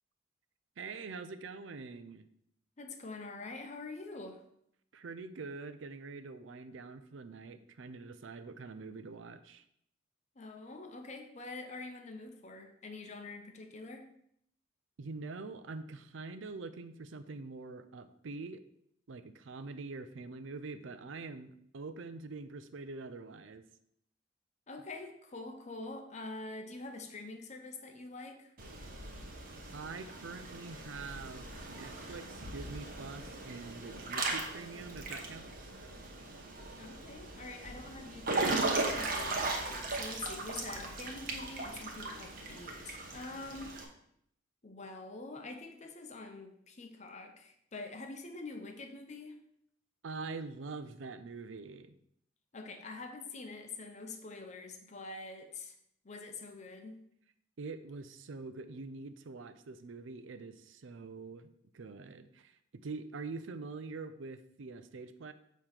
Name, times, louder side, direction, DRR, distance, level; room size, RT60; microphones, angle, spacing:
voice 1, 0.8-2.3 4.9-9.6 15.0-18.6 19.1-23.6 29.7-35.7 50.0-52.0 57.6-65.3, right 3 dB, 85° right, 11 dB, 0.5 m, -45 dB
voice 2, 2.8-4.4 10.4-14.1 24.7-28.5 36.8-43.7 44.6-49.4 52.5-55.7 56.0-56.9, left 3 dB, 35° left, 5 dB, 0.7 m, -45 dB
Water / Splash splatter / Drip, 28.6-43.8, right 3 dB, 50° right, 1.0 m, -38 dB
6.8 x 3.1 x 5.6 m, 0.71 s
head